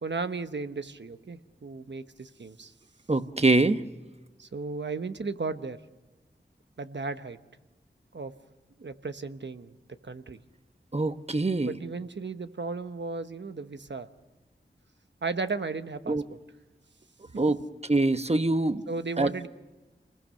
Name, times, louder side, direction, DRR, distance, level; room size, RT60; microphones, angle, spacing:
voice 1, 0.0-2.7 4.4-5.8 6.8-7.4 8.1-8.3 8.8-9.8 10.0-10.4 11.7-14.1 15.2-16.4 18.9-19.5, right 4 dB, 70° right, 9 dB, 1.1 m, -35 dB
voice 2, 3.1-3.8 10.9-11.7 16.1-16.2 17.4-18.8 19.2-19.5, right 2 dB, 35° right, 10 dB, 1.1 m, -24 dB
27.5 x 21.0 x 6.5 m, 1.2 s
wide cardioid pair, 40°, 19 cm